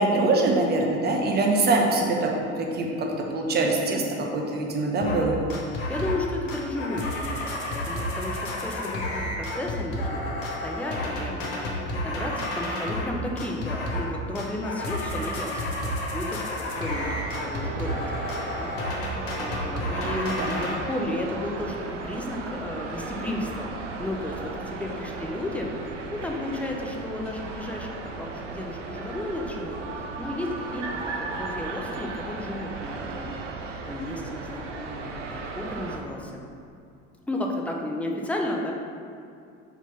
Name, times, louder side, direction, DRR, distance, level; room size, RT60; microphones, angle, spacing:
voice 1, 0.0-2.3 2.6-4.0 4.3-5.3 20.0-20.5, right 2 dB, 25° right, 0 dB, 0.9 m, -24 dB
sound 1, 5.0-5.2 5.5-6.2 6.5-13.1 13.4-14.1 14.4-20.8, left 1 dB, 55° left, 1.2 m, -31 dB
voice 2, 5.7-16.4 16.8-18.7 19.1-20.3 20.6-33.3 33.9-36.4 37.3-38.7, left 1 dB, 5° left, 0 dB, 0.5 m, -33 dB
sound 2, 16.7-36.0, right 3 dB, 70° right, 0.7 m, -36 dB
4.5 x 4.1 x 5.2 m, 2.4 s
figure-of-eight pair, 70°, 38 cm